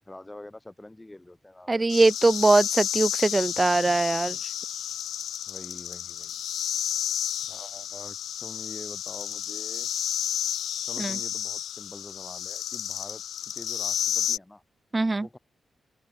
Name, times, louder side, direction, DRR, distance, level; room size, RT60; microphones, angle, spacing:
voice 1, 0.0-1.7 5.5-6.4 7.4-9.9 10.9-13.2 13.5-14.6 15.2-15.4, left 1 dB, 15° left, 3.2 m, -45 dB
voice 2, 1.7-4.4 11.0-11.2 14.9-15.3, right 2 dB, 30° right, 0.4 m, -22 dB
Male Cicada Close Up Mating Calls with Chorus in Background, 1.9-14.4, left 10 dB, 85° left, 1.1 m, -31 dB
open air
cardioid pair, 60°, 0 cm